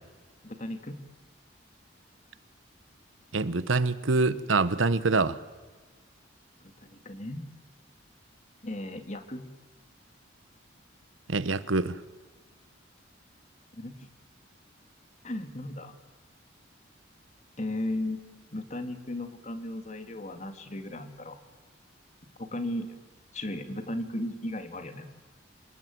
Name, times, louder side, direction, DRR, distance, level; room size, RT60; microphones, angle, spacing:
voice 1, 0.4-1.0 6.6-7.5 8.6-9.5 13.7-14.1 15.2-15.9 17.6-18.2 18.5-21.4 22.4-23.0 23.3-25.1, left 1 dB, 35° left, 8 dB, 2.1 m, -36 dB
voice 2, 3.3-5.4 11.3-12.0, right 3 dB, 85° right, 15 dB, 1.1 m, -25 dB
27.0 x 19.5 x 9.4 m, 1.4 s
head